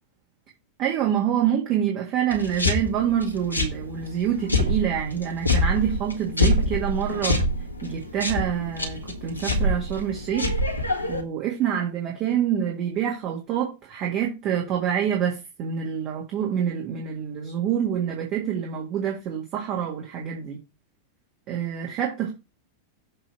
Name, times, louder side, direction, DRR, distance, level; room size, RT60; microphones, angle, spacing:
voice 1, 0.8-7.4 7.8-10.5 11.1-20.6 21.5-22.3, right 9 dB, 35° right, 1.8 m, -26 dB
sound 1, 2.3-11.2, left 1 dB, 85° left, 1.6 m, -26 dB
7.5 x 3.1 x 6.1 m
figure-of-eight pair, 90°, 0 cm